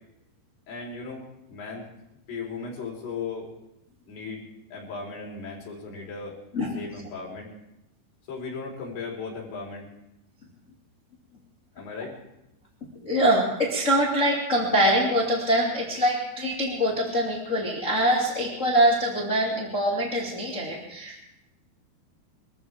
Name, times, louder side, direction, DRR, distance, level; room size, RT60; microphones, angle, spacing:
voice 1, 0.7-1.9 2.3-3.5 4.1-6.4 6.7-7.5 8.3-9.9 11.7-12.2, left 4 dB, 60° left, -2 dB, 5.9 m, -37 dB
voice 2, 13.0-21.2, right 1 dB, 25° left, -3 dB, 1.7 m, -24 dB
24.5 x 14.0 x 3.6 m, 0.87 s
omnidirectional pair, 5.2 m